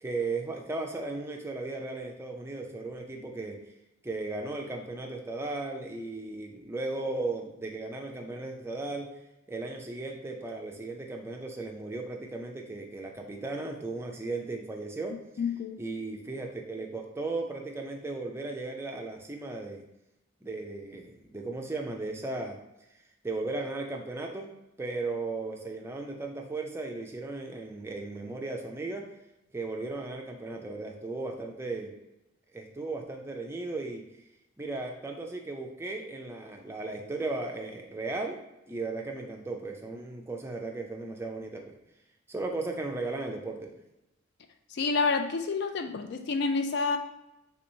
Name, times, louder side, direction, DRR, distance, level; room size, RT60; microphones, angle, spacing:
voice 1, 0.0-3.6 4.0-9.1 9.5-15.2 15.8-19.8 20.4-22.6 23.2-24.5 24.8-29.1 29.5-31.9 32.5-34.0 34.6-38.4 38.7-41.7 42.3-43.8, right 3 dB, 15° right, 1 dB, 0.4 m, -36 dB
voice 2, 15.4-15.8 44.7-47.0, left 4 dB, 60° left, 7 dB, 0.4 m, -28 dB
3.3 x 3.0 x 2.7 m, 0.91 s
head